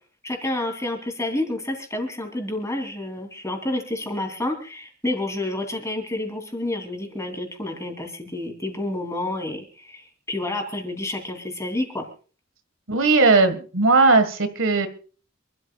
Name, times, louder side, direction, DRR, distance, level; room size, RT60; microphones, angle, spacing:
voice 1, 0.2-12.1, left 1 dB, 15° left, 4 dB, 3.1 m, -29 dB
voice 2, 12.9-14.9, right 3 dB, 85° right, 11 dB, 1.7 m, -18 dB
27.0 x 13.0 x 2.4 m, 0.38 s
head